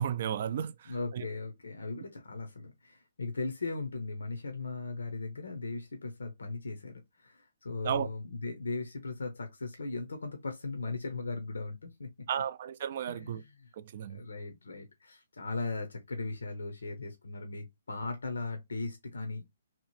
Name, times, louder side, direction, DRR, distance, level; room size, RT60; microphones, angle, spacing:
voice 1, 0.0-1.3 7.8-8.1 12.3-13.4 13.8-14.2, right 9 dB, 50° right, 0.3 m, -34 dB
voice 2, 0.8-12.3 13.1-13.7 14.1-19.5, left 3 dB, 85° left, 0.6 m, -38 dB
2.8 x 2.0 x 3.0 m
hypercardioid pair, 145°, 0 cm